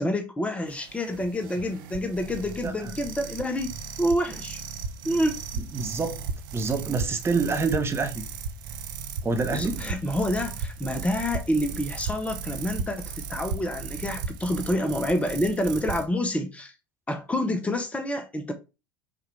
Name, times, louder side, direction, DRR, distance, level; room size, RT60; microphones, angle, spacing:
voice 1, 0.0-3.7 4.0-4.6 5.0-5.4 9.3-16.7 17.1-18.5, left 1 dB, 10° left, 0.7 m, -28 dB
sound 1, 0.7-16.0, right 5 dB, 65° right, 0.7 m, -36 dB
voice 2, 5.7-6.2 6.5-8.2 9.2-9.8, right 4 dB, 20° right, 0.8 m, -27 dB
5.8 x 2.4 x 3.2 m
hypercardioid pair, 75°, 12 cm